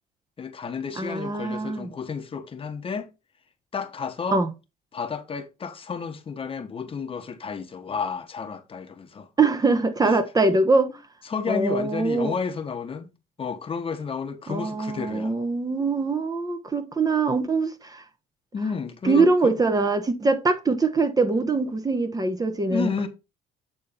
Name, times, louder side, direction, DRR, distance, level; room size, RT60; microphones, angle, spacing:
voice 1, 0.4-3.1 3.7-4.4 4.9-9.3 10.0-10.1 11.2-13.1 13.4-15.3 18.5-19.6 22.7-23.1, left 5 dB, 35° left, 1.1 m, -31 dB
voice 2, 1.0-1.9 4.3-4.5 9.4-10.9 11.5-12.3 14.5-18.0 19.0-23.1, right 3 dB, 20° right, 1.1 m, -23 dB
8.6 x 4.2 x 4.1 m
cardioid pair, 110°, 17 cm